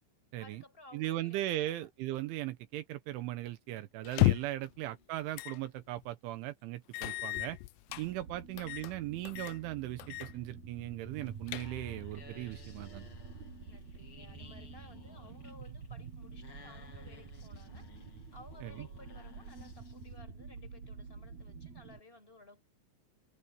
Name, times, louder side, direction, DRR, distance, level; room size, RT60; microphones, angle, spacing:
voice 1, 0.4-1.9 4.5-5.1 13.7-22.6, left 2 dB, 10° left, 7.0 m, -57 dB
voice 2, 0.9-7.6 8.0-13.1 18.6-18.9, right 15 dB, 80° right, 3.4 m, -38 dB
sound 1, 4.1-4.7 5.4-5.6 6.0-6.1 6.9-8.1 8.6-8.9 9.3-9.6 10.0-10.3 10.6-10.7 11.2-12.0, left 20 dB, 80° left, 2.6 m, -32 dB
sound 2, 7.9-22.0, right 4 dB, 50° right, 2.5 m, -48 dB
sound 3, 11.1-20.2, left 5 dB, 35° left, 2.4 m, -58 dB
omnidirectional pair, 5.6 m